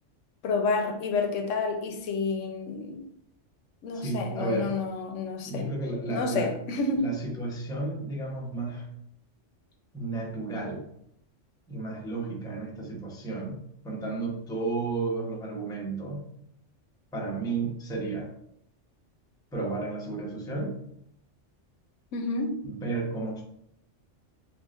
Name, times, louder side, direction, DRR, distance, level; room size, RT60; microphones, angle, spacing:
voice 1, 0.4-3.0 3.8-5.6 6.1-7.1 22.1-22.6, left 4 dB, 85° left, 1.0 m, -29 dB
voice 2, 4.0-4.7 5.4-6.5 7.0-8.9 9.9-10.9 11.7-13.6 13.8-16.3 17.1-18.3 19.5-20.8 22.6-23.4, right 3 dB, 5° left, 0.5 m, -32 dB
6.1 x 2.2 x 2.4 m
omnidirectional pair, 1.3 m